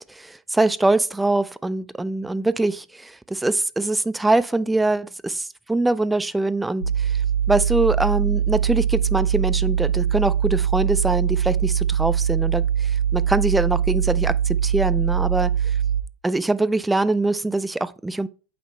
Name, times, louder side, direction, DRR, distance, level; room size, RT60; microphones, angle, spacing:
voice 1, 0.0-7.2 7.5-15.5 16.2-18.3, right 2 dB, 10° right, 0.4 m, -23 dB
sound 1, 6.8-16.0, right 8 dB, 80° right, 0.5 m, -22 dB
8.5 x 3.7 x 4.3 m
figure-of-eight pair, 85°, 0 cm